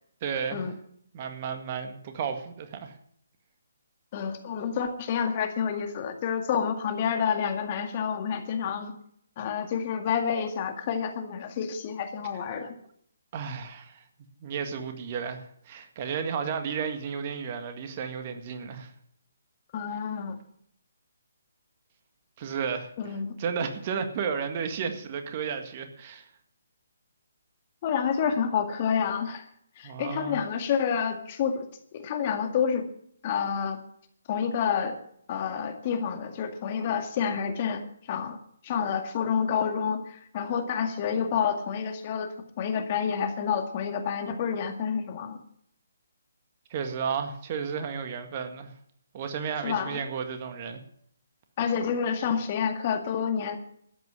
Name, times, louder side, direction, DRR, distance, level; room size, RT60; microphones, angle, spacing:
voice 1, 0.2-0.7 1.1-3.0 12.5-12.7 13.3-14.0 14.4-18.9 22.4-22.9 23.4-26.3 29.8-30.4 46.7-48.7 49.1-50.8, right 6 dB, 35° right, 6 dB, 1.8 m, -33 dB
voice 2, 4.1-8.9 9.4-12.7 19.7-20.4 23.0-23.3 27.8-29.4 29.8-31.7 31.9-32.8 33.2-33.8 34.3-35.0 35.3-38.4 38.6-45.4 49.6-50.0 51.6-53.6, left 7 dB, 35° left, 6 dB, 2.0 m, -29 dB
13.0 x 9.6 x 7.5 m, 0.65 s
figure-of-eight pair, 140°, 0 cm